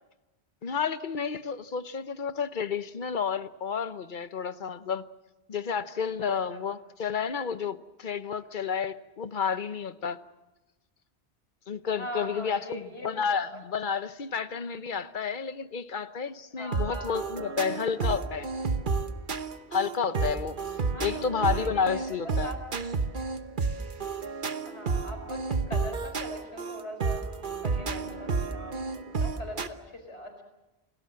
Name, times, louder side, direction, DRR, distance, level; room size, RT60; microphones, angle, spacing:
voice 1, 0.6-5.0 5.5-10.2 11.7-18.5 19.7-20.6 21.0-22.5, left 6 dB, 50° left, 12 dB, 1.1 m, -31 dB
voice 2, 6.2-6.6 11.9-13.9 16.6-18.0 20.8-22.0 22.4-22.6 24.6-27.2 27.6-30.4, equal, 85° left, 5 dB, 4.8 m, -42 dB
sound 1, 16.7-29.7, right 4 dB, 50° right, 1.2 m, -31 dB
28.5 x 19.0 x 7.6 m, 1.0 s
omnidirectional pair, 1.1 m